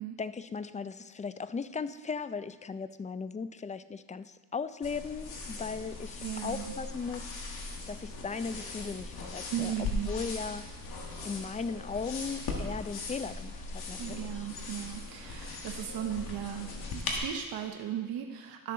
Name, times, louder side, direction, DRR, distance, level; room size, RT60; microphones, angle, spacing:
voice 1, 0.2-7.6 7.9-10.7 11.2-14.3, left 5 dB, 20° left, 14 dB, 0.4 m, -37 dB
sound 1, 4.8-17.2, left 3 dB, 80° left, 1.6 m, -39 dB
voice 2, 6.2-6.7 9.5-10.1 14.0-18.7, right 10 dB, 70° right, 4 dB, 0.8 m, -37 dB
12.0 x 6.7 x 3.8 m, 1.4 s
cardioid pair, 75°, 37 cm